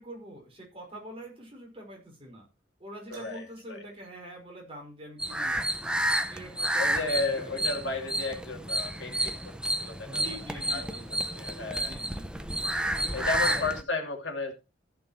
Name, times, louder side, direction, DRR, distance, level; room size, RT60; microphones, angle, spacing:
voice 1, 0.0-2.5 2.8-6.0 6.3-7.6 10.1-11.2 11.7-12.5 12.9-13.8, right 1 dB, 30° right, 5.2 m, -45 dB
voice 2, 3.1-3.8 6.8-9.5 9.8-10.2 10.7-11.9 13.1-14.5, left 3 dB, 75° left, 2.8 m, -33 dB
Piano, 3.1-4.0, right 2 dB, 55° right, 4.2 m, -51 dB
sound 1, 5.2-13.8, right 1 dB, 5° right, 0.8 m, -30 dB
14.5 x 6.4 x 4.4 m
head